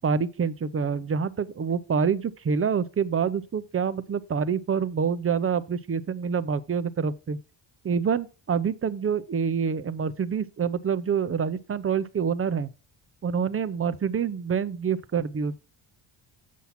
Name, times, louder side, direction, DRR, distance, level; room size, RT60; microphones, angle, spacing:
voice 1, 0.0-7.4 7.8-12.7 13.2-15.5, right 6 dB, 30° right, 0.6 m, -26 dB
7.3 x 5.7 x 5.9 m
cardioid pair, 85°, 49 cm